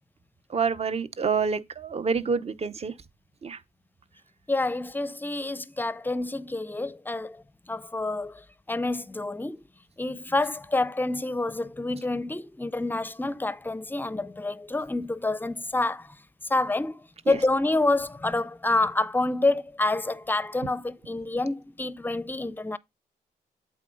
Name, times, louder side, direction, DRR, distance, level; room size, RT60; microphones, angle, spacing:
voice 1, 0.5-2.9 3.4-3.6 17.3-17.4, right 5 dB, 40° right, 0.9 m, -27 dB
voice 2, 4.5-9.6 10.0-16.2 16.5-17.0 17.3-22.8, left 2 dB, 10° left, 0.6 m, -28 dB
8.2 x 3.9 x 3.8 m
cardioid pair, 70°, 16 cm